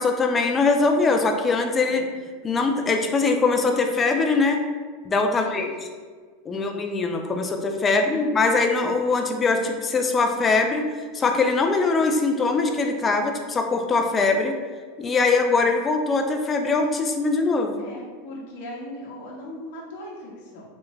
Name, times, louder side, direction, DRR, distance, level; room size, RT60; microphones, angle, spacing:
voice 1, 0.0-2.0 2.4-4.6 5.0-5.7 6.5-10.9 11.1-14.6 15.0-17.8, left 3 dB, 25° left, 4 dB, 0.4 m, -22 dB
voice 2, 5.3-5.6 6.5-6.9 7.8-8.2 15.5-15.7 17.8-20.6, left 1 dB, 60° left, -3 dB, 0.9 m, -39 dB
3.2 x 3.0 x 2.3 m, 1.5 s
hypercardioid pair, 95°, 0 cm